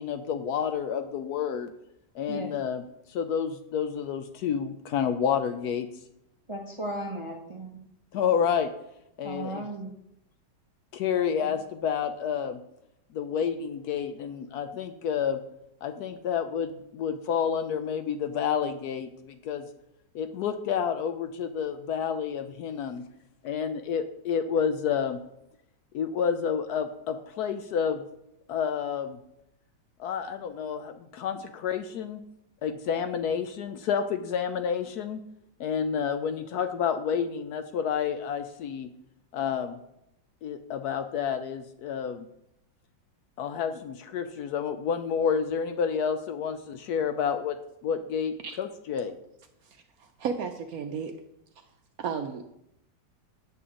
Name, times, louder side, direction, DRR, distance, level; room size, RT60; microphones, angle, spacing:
voice 1, 0.0-1.7 2.1-2.8 3.1-5.9 8.1-8.7 9.2-9.7 10.9-12.6 13.1-15.4 15.8-19.7 20.1-23.0 23.4-25.2 25.9-28.0 28.5-29.2 30.0-32.2 32.6-35.2 35.6-38.9 39.3-39.8 40.4-42.3 43.4-47.6 47.8-49.1, left 7 dB, 70° left, 8 dB, 1.0 m, -29 dB
voice 2, 6.5-7.8 9.2-9.9, right 1 dB, 35° right, 0 dB, 0.5 m, -35 dB
voice 3, 50.0-51.1 52.0-52.4, right 6 dB, 70° right, 6 dB, 0.9 m, -33 dB
8.6 x 6.9 x 3.7 m, 0.80 s
omnidirectional pair, 1.9 m